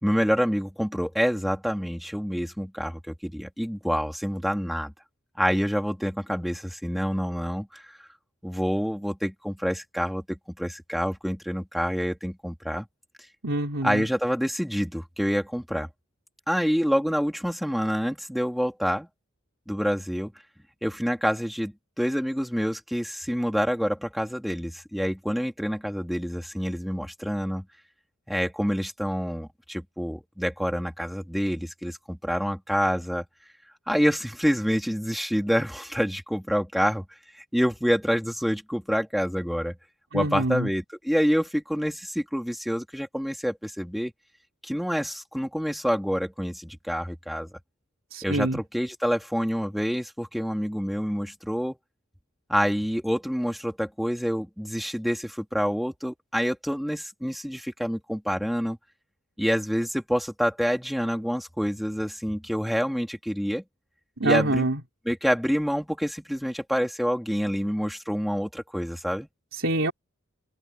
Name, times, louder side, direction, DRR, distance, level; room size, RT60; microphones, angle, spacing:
voice 1, 0.0-4.9 5.4-7.8 8.4-12.9 13.8-15.9 16.5-19.1 19.7-20.3 20.8-27.7 28.3-33.3 33.9-37.1 37.5-39.7 40.1-44.1 44.6-47.5 48.2-51.8 52.5-58.8 59.4-63.6 64.2-64.7 65.1-69.3, equal, ahead, 3.6 m, -27 dB
voice 2, 13.4-14.0 40.1-40.7 48.1-48.6 64.2-64.8 69.6-69.9, right 2 dB, 70° right, 4.0 m, -25 dB
open air
head